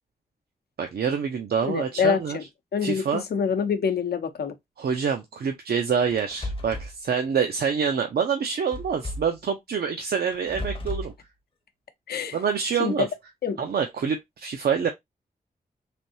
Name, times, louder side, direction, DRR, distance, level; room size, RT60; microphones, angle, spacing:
voice 1, 0.8-2.4 2.8-3.2 4.8-11.1 12.3-13.1 13.6-14.9, right 6 dB, 80° right, 0.6 m, -26 dB
voice 2, 1.6-2.4 2.7-4.5 12.1-12.4 12.8-13.1 13.4-13.6, left 6 dB, 80° left, 0.6 m, -26 dB
sound 1, 6.1-6.9 8.7-9.4 10.3-11.1, left 1 dB, 35° left, 0.7 m, -34 dB
3.4 x 2.6 x 2.7 m
wide cardioid pair, 110°, 16 cm